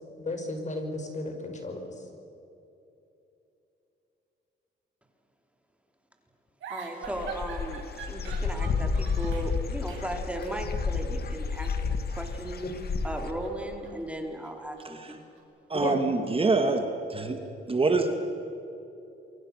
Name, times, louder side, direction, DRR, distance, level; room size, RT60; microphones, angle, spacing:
voice 1, 0.2-2.0 15.7-16.1, left 2 dB, 35° left, 4 dB, 5.5 m, -34 dB
sound 1, 6.6-9.5 9.9-10.1 10.4-10.6 11.5-12.7 13.0-15.4, right 6 dB, 75° right, 6.6 m, -45 dB
voice 2, 6.7-12.6 13.0-15.2, right 1 dB, 5° right, 3 dB, 3.7 m, -36 dB
Dog / Bird, 7.0-13.3, left 4 dB, 55° left, 2.3 m, -31 dB
voice 3, 15.7-17.4 17.7-18.1, right 3 dB, 30° right, 5 dB, 2.3 m, -25 dB
28.5 x 23.5 x 6.7 m, 2.9 s
cardioid pair, 90°, 20 cm